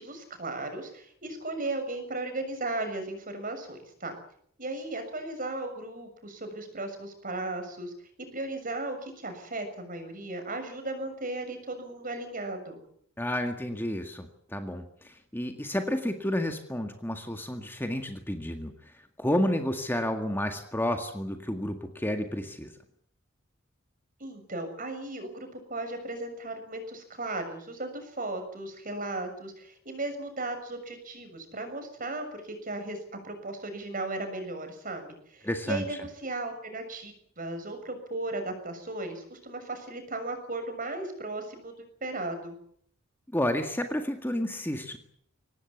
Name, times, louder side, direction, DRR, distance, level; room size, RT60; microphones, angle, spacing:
voice 1, 0.0-4.1 4.6-7.9 8.2-12.8 24.2-33.0 33.2-41.7 42.0-42.5, right 2 dB, 40° right, 7 dB, 6.7 m, -36 dB
voice 2, 13.2-18.7 19.2-22.7 35.4-35.8 43.3-45.0, left 1 dB, 10° left, 5 dB, 1.9 m, -31 dB
24.0 x 19.0 x 8.5 m, 0.65 s
head